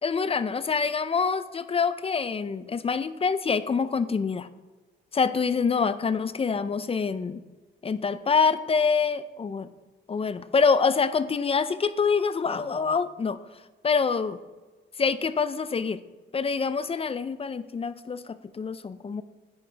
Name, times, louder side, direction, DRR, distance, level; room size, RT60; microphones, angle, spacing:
voice 1, 0.0-4.5 5.1-7.4 7.8-9.7 10.1-13.4 13.8-14.4 15.0-16.0 16.3-19.2, left 5 dB, 30° left, 13 dB, 0.5 m, -26 dB
11.0 x 8.4 x 3.4 m, 1.2 s
cardioid pair, 90°, 20 cm